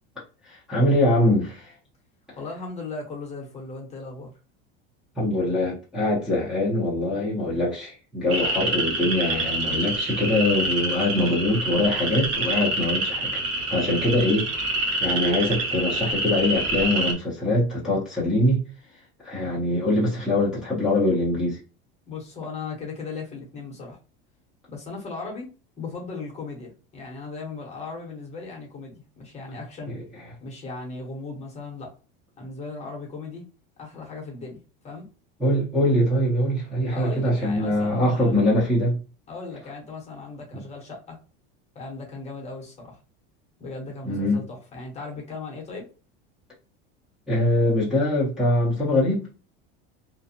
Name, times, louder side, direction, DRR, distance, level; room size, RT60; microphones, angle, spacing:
voice 1, 0.4-1.7 5.2-13.4 13.7-18.6 19.2-21.6 29.9-30.0 35.4-39.0 40.5-40.6 44.0-44.4 47.3-49.3, left 1 dB, ahead, 0.7 m, -23 dB
voice 2, 2.4-4.3 22.1-24.0 24.7-25.5 25.8-30.0 30.4-31.9 32.4-33.4 33.8-34.6 34.8-35.1 36.9-38.4 39.3-41.2 41.7-43.0 43.6-45.9, left 3 dB, 25° left, 0.9 m, -37 dB
sound 1, 8.3-17.1, right 2 dB, 80° right, 1.0 m, -27 dB
2.5 x 2.2 x 2.7 m
supercardioid pair, 150°, 29 cm